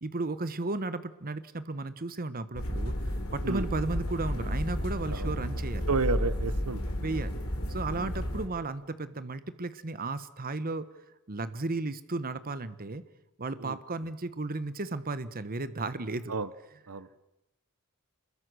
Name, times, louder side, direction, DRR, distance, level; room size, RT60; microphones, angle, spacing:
voice 1, 0.0-2.9 3.3-5.9 7.0-7.3 7.7-10.9 11.3-13.0 13.4-16.3, right 2 dB, 40° right, 13 dB, 1.1 m, -34 dB
sound 1, 2.5-8.5, equal, 75° left, 3.7 m, -32 dB
voice 2, 5.9-6.8 8.0-8.1 13.6-13.8 16.3-16.5 16.9-17.2, right 4 dB, 80° right, 15 dB, 1.0 m, -31 dB
27.5 x 22.0 x 6.3 m, 0.93 s
head